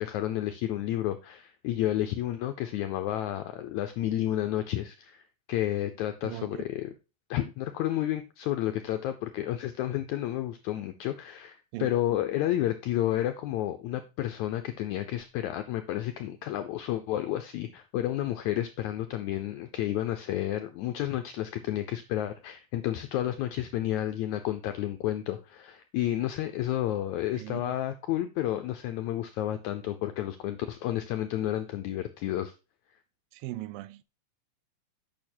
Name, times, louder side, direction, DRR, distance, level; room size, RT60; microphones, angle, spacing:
voice 1, 0.0-5.2 5.5-6.9 7.3-32.5, left 13 dB, 90° left, 1.6 m, -31 dB
voice 2, 6.2-6.6 11.7-12.0 27.4-27.8 33.3-34.0, right 16 dB, 85° right, 2.3 m, -39 dB
8.7 x 6.0 x 4.3 m
omnidirectional pair, 4.0 m